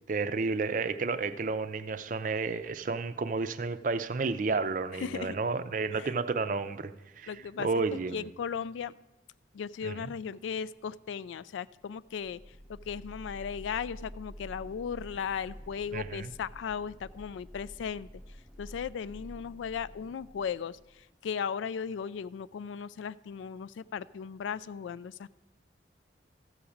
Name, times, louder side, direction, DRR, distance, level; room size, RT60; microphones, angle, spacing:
voice 1, 0.1-7.3 7.6-8.2 9.8-10.1 15.9-16.3, right 4 dB, 45° right, 12 dB, 0.4 m, -31 dB
voice 2, 4.9-5.4 5.9-6.1 7.3-7.7 8.1-8.9 9.5-12.4 12.7-18.1 18.6-25.3, left 7 dB, 85° left, 18 dB, 0.3 m, -36 dB
sound 1, 12.0-21.3, equal, ahead, 0.6 m, -49 dB
14.5 x 4.9 x 7.1 m, 1.0 s
head